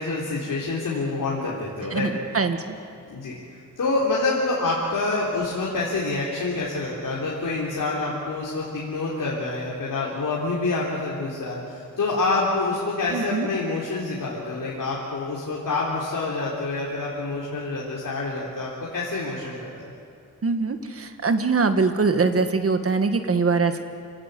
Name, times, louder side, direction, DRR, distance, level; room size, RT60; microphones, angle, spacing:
voice 1, 0.0-2.1 3.1-3.4 3.8-19.9, left 3 dB, 70° left, -5 dB, 3.7 m, -27 dB
voice 2, 1.9-2.8 13.1-13.5 20.4-23.8, right 4 dB, 45° right, 8 dB, 1.6 m, -23 dB
28.0 x 18.0 x 8.3 m, 2.4 s
wide cardioid pair, 160°, 33 cm